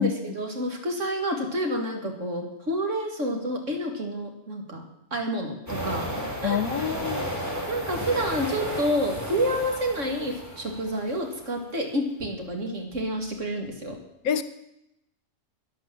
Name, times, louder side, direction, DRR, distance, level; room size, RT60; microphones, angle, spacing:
voice 1, 0.0-4.8 5.1-6.1 6.4-6.9 7.7-14.0, equal, 60° right, 3 dB, 2.6 m, -29 dB
sound 1, 5.7-11.4, equal, 10° right, 2.6 m, -33 dB
voice 2, 6.4-7.3 14.2-14.4, left 8 dB, 80° left, 12 dB, 1.4 m, -26 dB
12.0 x 10.0 x 7.6 m, 0.83 s
omnidirectional pair, 1.5 m